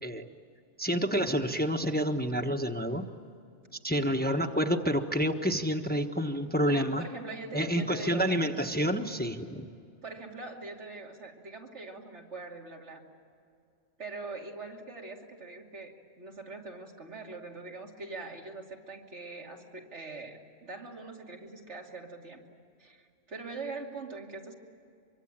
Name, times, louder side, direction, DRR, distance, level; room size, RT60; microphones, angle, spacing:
voice 1, 0.8-3.1 3.8-7.0 7.5-9.7, equal, 10° left, 4 dB, 1.2 m, -28 dB
voice 2, 6.7-8.4 10.0-13.0 14.0-22.4 22.8-24.5, right 3 dB, 75° right, 1 dB, 3.0 m, -43 dB
24.5 x 24.0 x 8.9 m, 2.4 s
omnidirectional pair, 1.2 m